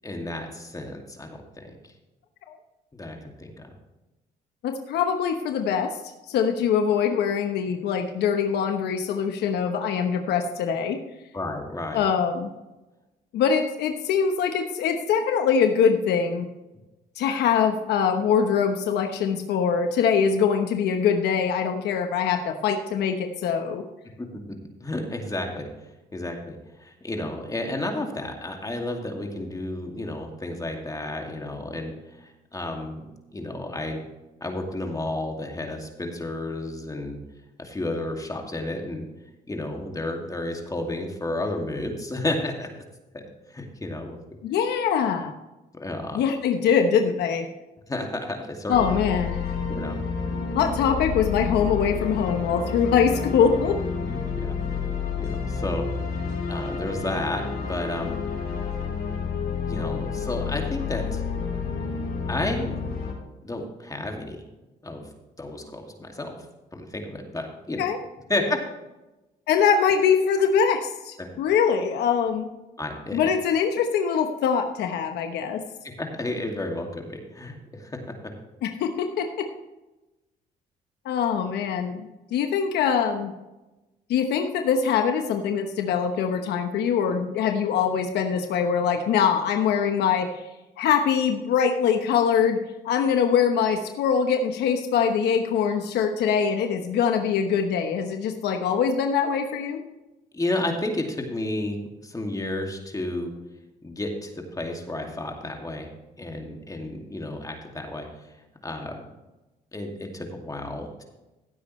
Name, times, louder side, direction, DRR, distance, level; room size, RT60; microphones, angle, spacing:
voice 1, 0.0-1.6 2.9-3.7 11.3-12.1 24.2-24.5 24.8-25.7 26.1-33.1 33.3-34.0 34.4-37.2 37.6-39.0 39.5-42.8 43.1-44.2 45.7-46.2 47.9-48.8 49.7-50.0 54.0-54.6 55.2-55.8 56.1-56.2 56.5-58.2 59.7-61.2 62.3-62.7 63.4-64.4 64.8-65.1 65.4-66.4 66.7-67.8 68.3-68.6 71.2-71.3 72.8-73.3 75.8-78.1 100.3-103.3 103.8-105.9 106.2-108.3 108.6-109.0 109.7-111.0, left 2 dB, 20° left, 2 dB, 2.4 m, -32 dB
voice 2, 4.6-6.0 6.3-11.0 11.9-12.5 13.3-16.5 17.2-23.8 44.4-45.3 46.1-47.4 48.7-49.4 50.5-53.8 67.8-68.0 69.5-72.5 73.1-75.6 78.6-79.5 81.0-83.3 84.1-90.4 90.8-92.6 92.8-99.8, left 7 dB, 80° left, 6 dB, 1.1 m, -23 dB
sound 1, 48.7-63.1, left 5 dB, 65° left, 3.6 m, -30 dB
16.0 x 8.3 x 3.2 m, 1.0 s
supercardioid pair, 75°, 17 cm